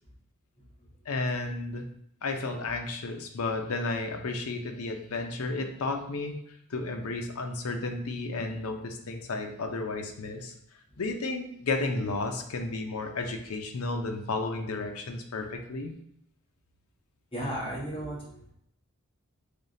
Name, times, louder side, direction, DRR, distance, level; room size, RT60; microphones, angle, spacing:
voice 1, 1.1-1.9 2.2-6.3 6.7-10.5 11.0-15.9, left 3 dB, 80° left, 4 dB, 0.6 m, -32 dB
voice 2, 17.3-18.5, right 1 dB, 25° left, -6 dB, 1.3 m, -35 dB
3.7 x 3.5 x 2.7 m, 0.72 s
head